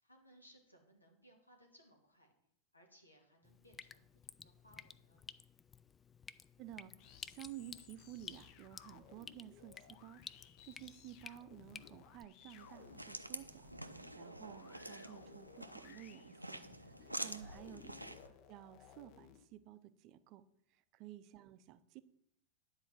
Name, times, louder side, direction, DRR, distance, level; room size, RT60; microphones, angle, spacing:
voice 1, 0.0-2.3 2.7-5.2 17.8-18.4 21.2-21.4, equal, 85° left, 2 dB, 2.2 m, -66 dB
Drip, 3.4-12.3, left 5 dB, 15° left, 0.4 m, -55 dB
voice 2, 6.6-17.9 18.5-22.0, right 12 dB, 40° right, 13 dB, 0.6 m, -54 dB
sound 1, 7.0-19.5, left 9 dB, 40° left, 0.8 m, -60 dB
sound 2, 12.6-18.3, right 1 dB, 85° right, 0.5 m, -48 dB
10.0 x 4.8 x 7.3 m, 0.74 s
figure-of-eight pair, 90°, 0 cm